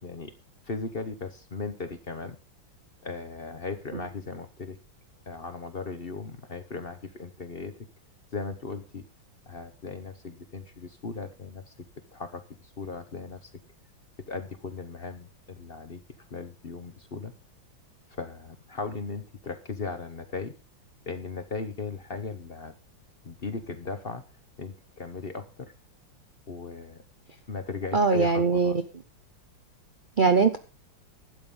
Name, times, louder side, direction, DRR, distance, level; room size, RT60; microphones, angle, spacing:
voice 1, 0.0-0.3 0.6-2.4 3.0-4.8 5.3-7.7 8.3-9.0 9.5-11.7 12.1-13.5 14.3-16.0 16.3-17.3 18.1-20.5 21.1-22.7 23.2-24.2 24.6-25.7 26.5-27.0 27.5-28.8, left 4 dB, 40° left, 9 dB, 0.9 m, -37 dB
voice 2, 27.9-28.8 30.2-30.6, right 5 dB, 80° right, 7 dB, 0.4 m, -21 dB
12.0 x 8.8 x 5.4 m, 0.33 s
omnidirectional pair, 2.1 m